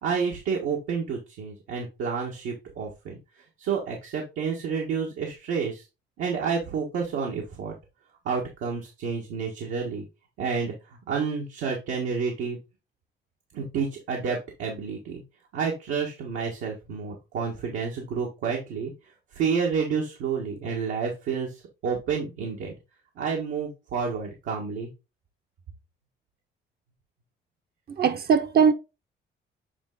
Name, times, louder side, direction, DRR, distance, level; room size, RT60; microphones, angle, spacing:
voice 1, 0.0-3.2 3.6-5.8 6.2-7.7 8.2-10.0 10.4-10.7 11.1-12.6 13.5-15.2 15.5-18.9 19.3-22.7 23.2-24.9, right 5 dB, 90° right, 1.7 m, -29 dB
voice 2, 28.0-28.7, right 6 dB, 50° right, 0.8 m, -20 dB
8.6 x 3.3 x 3.9 m
cardioid pair, 90°, 20 cm